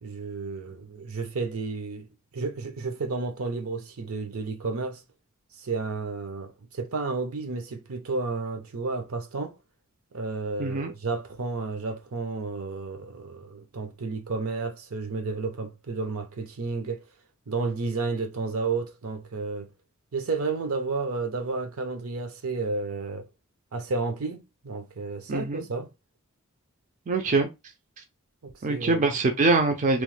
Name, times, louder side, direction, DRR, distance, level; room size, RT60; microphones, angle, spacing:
voice 1, 0.0-2.1 2.3-5.0 5.6-9.6 10.1-17.0 17.5-19.7 20.1-23.3 23.7-25.9 28.4-29.1, right 4 dB, 75° right, 0.6 m, -32 dB
voice 2, 10.6-10.9 25.3-25.7 27.1-27.5 28.6-30.0, right 3 dB, 35° right, 0.4 m, -24 dB
3.0 x 2.1 x 3.1 m
head